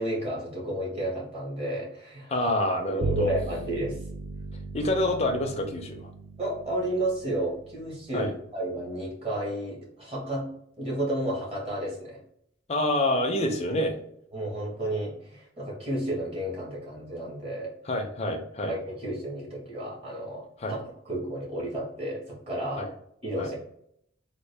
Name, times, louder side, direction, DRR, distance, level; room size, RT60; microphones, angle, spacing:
voice 1, 0.0-2.3 2.8-4.0 6.4-10.5 10.8-12.2 14.3-17.7 18.7-22.8 23.2-23.7, right 1 dB, 30° right, -4 dB, 1.3 m, -32 dB
voice 2, 2.3-3.3 4.7-6.1 8.1-8.3 12.7-14.0 17.9-18.7 20.6-20.8 22.8-22.9 23.4-23.5, left 1 dB, 30° left, 2 dB, 0.5 m, -27 dB
Bowed string instrument, 3.0-8.6, right 3 dB, 55° right, 0.4 m, -37 dB
3.6 x 2.4 x 3.3 m, 0.72 s
head